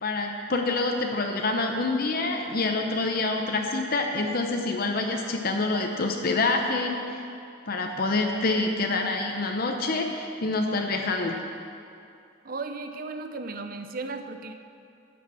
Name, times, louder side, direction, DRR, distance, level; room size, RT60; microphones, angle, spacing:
voice 1, 0.0-7.3 7.7-11.4, left 3 dB, 50° left, 3 dB, 0.8 m, -27 dB
voice 2, 12.4-14.5, right 3 dB, 45° right, 7 dB, 0.6 m, -35 dB
11.0 x 6.6 x 7.6 m, 2.5 s
head